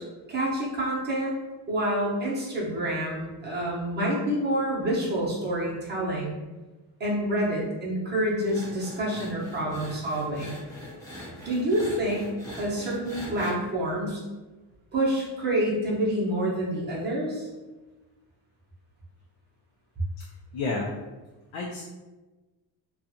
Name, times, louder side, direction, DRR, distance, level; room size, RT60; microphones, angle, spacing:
voice 1, 0.3-1.4 1.7-6.4 7.0-10.6 11.4-12.3 12.6-14.2 14.9-17.5, right 1 dB, 20° right, -6 dB, 0.7 m, -27 dB
sound 1, 8.4-13.5, equal, 10° left, 0.4 m, -42 dB
voice 2, 20.2-20.9 21.5-21.8, left 3 dB, 80° left, -2 dB, 0.5 m, -32 dB
2.5 x 2.3 x 2.6 m, 1.2 s
cardioid pair, 140°, 46 cm